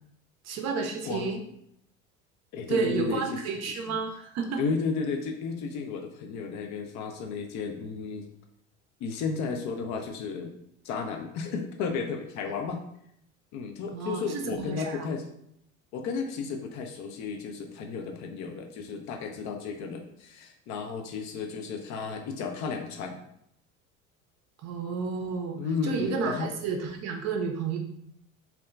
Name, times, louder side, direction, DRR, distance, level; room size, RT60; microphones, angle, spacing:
voice 1, 0.4-1.4 2.7-4.6 13.9-15.1 24.6-25.6 25.8-27.8, right 5 dB, 40° right, 3 dB, 0.5 m, -31 dB
voice 2, 2.5-3.4 3.7-4.0 4.6-8.3 9.0-10.5 10.8-12.8 13.5-15.3 15.9-23.2 25.6-26.5, left 5 dB, 45° left, 4 dB, 0.4 m, -33 dB
2.8 x 2.2 x 2.3 m, 0.74 s
hypercardioid pair, 70°, 41 cm